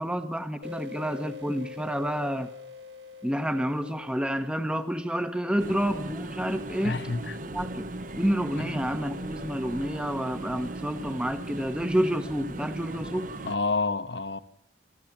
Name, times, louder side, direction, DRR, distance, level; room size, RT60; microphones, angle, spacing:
voice 1, 0.0-2.5 3.2-7.0 7.5-7.9 8.2-13.3, equal, 5° right, 1.0 m, -29 dB
sound 1, 0.6-5.9, left 5 dB, 70° right, 1.5 m, -45 dB
sound 2, 5.6-13.6, right 2 dB, 45° right, 1.0 m, -38 dB
voice 2, 6.8-7.4 8.6-8.8 13.5-14.4, left 3 dB, 70° left, 1.2 m, -29 dB
28.0 x 13.5 x 7.4 m
head